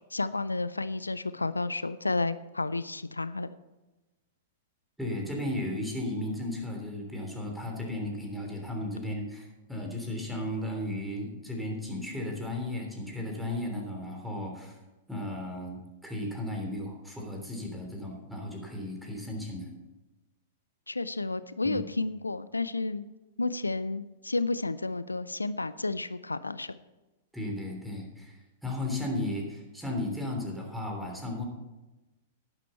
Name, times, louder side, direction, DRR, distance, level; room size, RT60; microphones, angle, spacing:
voice 1, 0.1-3.5 20.9-23.1 23.4-26.8, left 3 dB, 90° left, 15 dB, 0.4 m, -31 dB
voice 2, 5.0-14.7 15.1-19.7 21.6-21.8 27.3-31.5, left 1 dB, ahead, 0 dB, 3.3 m, -35 dB
11.0 x 11.0 x 4.3 m, 1.1 s
figure-of-eight pair, 100°, 0 cm